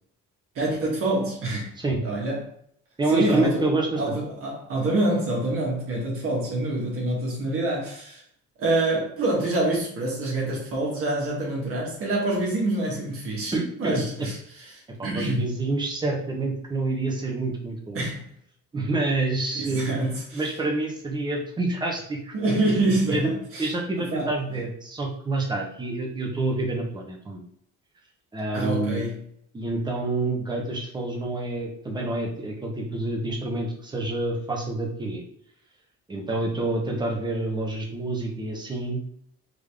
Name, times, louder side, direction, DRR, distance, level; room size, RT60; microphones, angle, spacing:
voice 1, 0.5-1.7 2.0-2.4 3.1-3.6 4.0-8.2 8.6-15.5 17.9-18.3 19.5-20.5 22.3-23.7 24.0-24.3 28.5-29.2, right 2 dB, 50° right, -3 dB, 1.4 m, -26 dB
voice 2, 3.0-4.2 13.5-14.0 15.0-18.0 18.7-22.3 23.1-23.3 23.6-27.4 28.3-29.0 29.5-35.2 36.1-39.1, right 2 dB, 15° right, 0 dB, 0.9 m, -27 dB
3.7 x 3.5 x 3.4 m, 0.68 s
cardioid pair, 160°, 29 cm